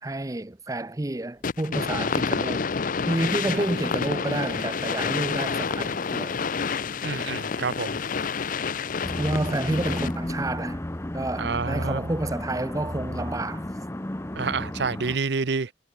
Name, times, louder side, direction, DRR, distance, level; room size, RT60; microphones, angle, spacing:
voice 1, 0.0-2.7 3.1-6.5 9.2-10.8 11.1-13.7, right 1 dB, 20° right, 0.7 m, -29 dB
sound 1, 1.4-10.3, left 5 dB, 45° left, 0.6 m, -28 dB
voice 2, 7.0-8.0 11.4-12.0 14.3-15.7, right 4 dB, 65° right, 0.7 m, -28 dB
sound 2, 9.0-15.2, left 1 dB, 15° left, 0.8 m, -33 dB
head